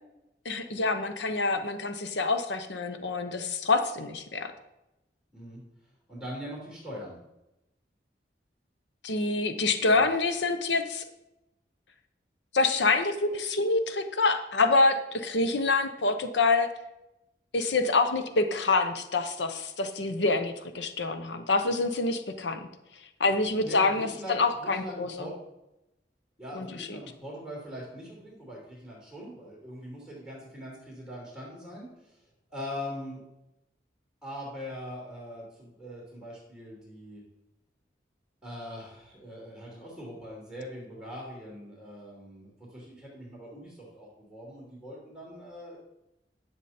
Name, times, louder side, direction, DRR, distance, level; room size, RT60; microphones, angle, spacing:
voice 1, 0.4-4.5 9.0-11.0 12.5-16.7 17.5-22.6 23.2-25.1 26.5-26.9, left 3 dB, 90° left, 8 dB, 0.9 m, -26 dB
voice 2, 6.1-7.2 9.8-10.0 23.6-25.3 26.4-32.2 32.5-33.2 34.2-37.2 38.4-45.8, equal, ahead, -6 dB, 3.0 m, -42 dB
11.0 x 7.2 x 4.3 m, 0.91 s
head